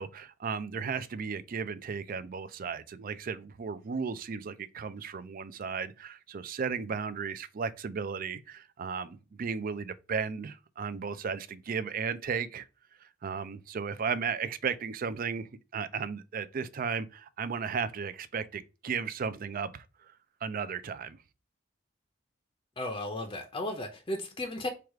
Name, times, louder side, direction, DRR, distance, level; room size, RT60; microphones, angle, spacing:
voice 1, 0.0-12.7 13.0-20.1 20.4-21.2, right 6 dB, 50° right, 0.4 m, -35 dB
voice 2, 22.8-24.7, left 1 dB, 25° left, 0.6 m, -35 dB
4.7 x 2.4 x 4.6 m
head